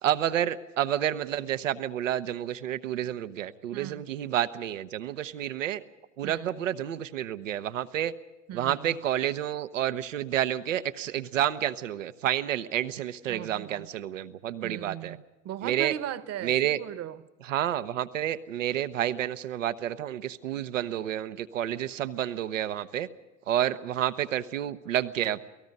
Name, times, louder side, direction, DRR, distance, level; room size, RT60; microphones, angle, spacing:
voice 1, 0.0-5.8 6.2-8.1 8.5-15.2 15.6-15.9 16.4-16.8 17.4-23.1 23.5-25.5, right 11 dB, 85° right, 1.0 m, -29 dB
voice 2, 3.7-4.0 6.2-6.6 8.5-9.0 13.3-13.9 14.6-17.2, right 11 dB, 40° right, 1.1 m, -38 dB
29.0 x 18.5 x 5.4 m
hypercardioid pair, 85°, 38 cm